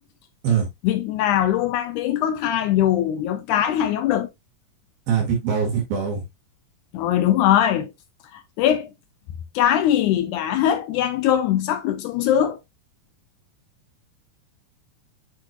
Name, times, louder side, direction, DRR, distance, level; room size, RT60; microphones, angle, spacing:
voice 1, 0.8-4.3 6.9-7.9 8.3-8.9 9.6-12.6, left 11 dB, 85° left, 1.8 m, -21 dB
voice 2, 5.1-6.2, right 7 dB, 90° right, 3.9 m, -22 dB
8.7 x 4.5 x 2.5 m
omnidirectional pair, 4.0 m